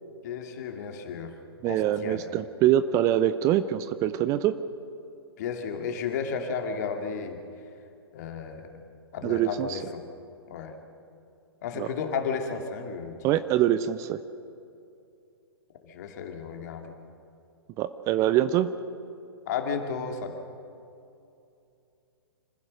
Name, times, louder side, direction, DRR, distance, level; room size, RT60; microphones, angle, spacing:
voice 1, 0.2-1.3 1.7-2.2 5.4-7.4 8.1-8.7 9.1-9.8 10.5-10.7 11.6-13.2 15.8-16.9 19.5-20.4, left 6 dB, 45° left, 4 dB, 2.5 m, -33 dB
voice 2, 1.6-4.5 9.2-9.8 11.8-11.9 13.2-14.2 17.8-18.7, right 12 dB, 25° right, 13 dB, 0.6 m, -24 dB
26.5 x 15.5 x 6.5 m, 2.6 s
figure-of-eight pair, 115°, 13 cm